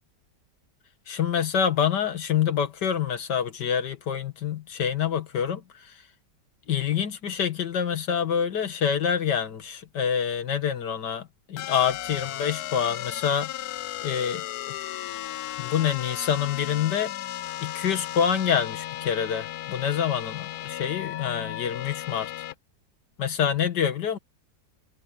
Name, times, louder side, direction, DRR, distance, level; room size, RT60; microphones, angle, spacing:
voice 1, 1.1-5.9 6.7-11.2 11.5-13.5 14.0-14.8 15.6-17.1 17.6-22.3 23.2-24.2, left 8 dB, 90° left, 2.2 m, -26 dB
sound 1, 11.6-22.5, left 13 dB, 75° left, 1.1 m, -35 dB
omnidirectional pair, 1.8 m